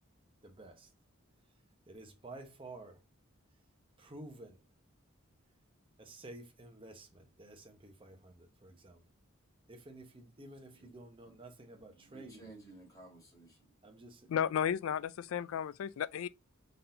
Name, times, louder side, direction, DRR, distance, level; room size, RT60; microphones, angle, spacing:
voice 1, 0.4-0.9 1.9-3.0 4.0-4.6 6.0-9.0 9.7-12.5 13.8-14.3, right 2 dB, 25° right, 0.9 m, -51 dB
voice 2, 11.9-13.7, right 2 dB, 15° left, 2.0 m, -55 dB
voice 3, 14.3-16.3, left 8 dB, 70° left, 0.3 m, -33 dB
3.9 x 3.8 x 2.6 m
head